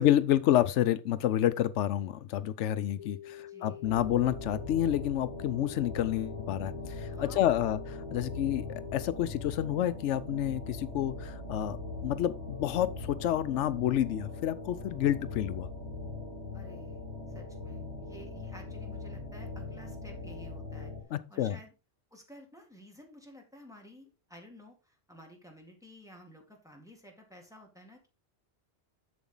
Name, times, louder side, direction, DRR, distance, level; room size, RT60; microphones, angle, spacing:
voice 1, 0.0-8.7 8.9-11.8 12.0-15.7 21.1-21.6, left 12 dB, 90° left, 0.9 m, -29 dB
sound 1, 3.0-9.1, left 11 dB, 45° left, 0.6 m, -46 dB
voice 2, 3.5-3.9 7.0-7.7 16.5-17.0 17.3-21.7 22.1-28.1, equal, 5° right, 2.0 m, -53 dB
sound 2, 3.8-21.0, left 2 dB, 60° right, 2.2 m, -41 dB
7.3 x 7.0 x 3.8 m
omnidirectional pair, 1.2 m